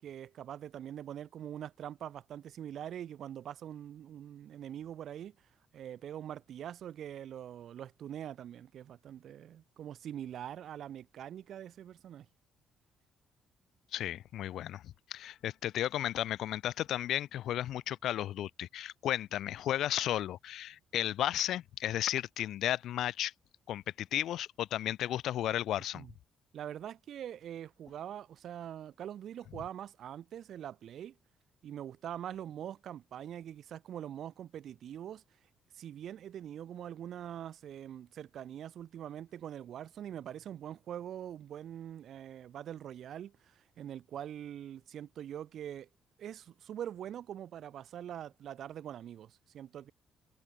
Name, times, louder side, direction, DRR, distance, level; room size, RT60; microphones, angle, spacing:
voice 1, 0.0-5.3 5.7-12.3 25.9-26.1 26.5-31.2 31.6-35.2 35.7-45.9 46.2-49.9, right 10 dB, 70° right, 4.2 m, -43 dB
voice 2, 13.9-23.3 23.7-26.1, left 12 dB, 80° left, 2.2 m, -34 dB
cardioid pair, 90°, 0 cm